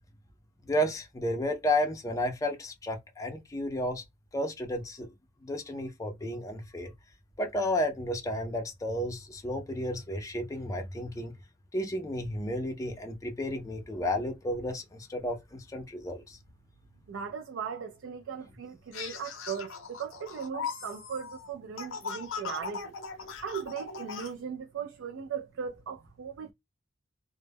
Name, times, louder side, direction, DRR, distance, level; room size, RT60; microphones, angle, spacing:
voice 1, 0.6-4.0 4.3-5.1 5.4-6.9 7.4-11.3 11.7-16.4, left 1 dB, 15° left, 0.4 m, -32 dB
voice 2, 17.1-23.0 23.4-26.5, right 7 dB, 65° right, 0.3 m, -38 dB
sound 1, 18.9-24.3, left 6 dB, 70° left, 0.6 m, -39 dB
2.1 x 2.0 x 3.3 m
head